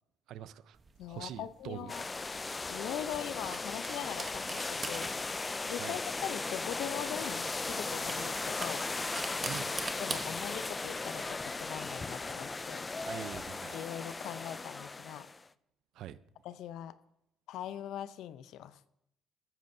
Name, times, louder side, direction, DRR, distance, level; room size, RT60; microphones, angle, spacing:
voice 1, 0.3-0.8 1.1-1.9 5.8-6.0 9.4-9.7 13.0-13.8 15.9-16.2, right 11 dB, 70° right, 0.5 m, -43 dB
sound 1, 0.8-13.4, right 4 dB, 30° right, 0.9 m, -45 dB
voice 2, 1.0-2.1 2.7-5.1 5.6-8.8 10.0-12.8 13.7-15.3 16.4-16.9 17.5-18.8, left 11 dB, 75° left, 0.6 m, -41 dB
sound 2, 1.9-15.4, left 3 dB, 20° left, 0.3 m, -37 dB
14.0 x 13.5 x 2.7 m
cardioid pair, 130°, 0 cm